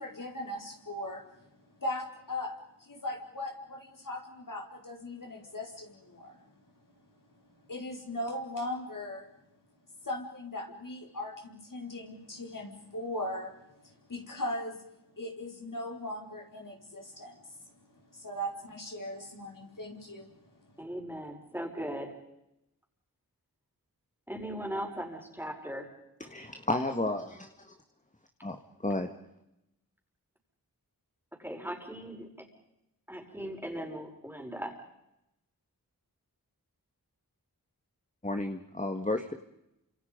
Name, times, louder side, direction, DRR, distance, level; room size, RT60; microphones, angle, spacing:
voice 1, 0.0-6.5 6.8-6.9 7.5-9.3 10.0-14.8 15.2-20.8, left 1 dB, 60° left, 0 dB, 5.0 m, -39 dB
voice 2, 20.8-22.2 24.3-25.9 31.3-32.5 33.1-34.8, equal, 5° right, 2 dB, 5.5 m, -38 dB
voice 3, 26.3-27.5 28.4-28.6 28.8-29.1 38.2-39.3, left 2 dB, 20° left, 6 dB, 1.8 m, -32 dB
29.5 x 26.5 x 5.3 m, 0.88 s
wide cardioid pair, 55°, 36 cm